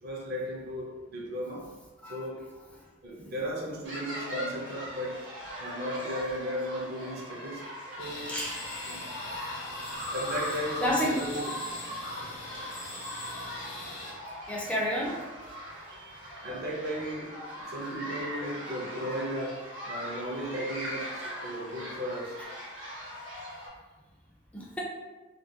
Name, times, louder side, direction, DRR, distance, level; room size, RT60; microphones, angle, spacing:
voice 1, 0.0-1.7 2.0-2.5 3.0-5.3 5.6-7.7 8.0-8.4 8.9-9.2 10.0-11.5 12.2-12.4 16.4-22.4, equal, 55° right, -2 dB, 0.5 m, -36 dB
sound 1, 3.8-23.7, equal, 70° right, 0.9 m, -40 dB
sound 2, 8.0-14.1, left 2 dB, 65° left, 0.6 m, -42 dB
voice 2, 10.8-11.2 14.5-15.2 15.9-16.2 24.5-24.8, equal, 5° left, -4 dB, 0.3 m, -30 dB
2.3 x 2.2 x 2.6 m, 1.2 s
head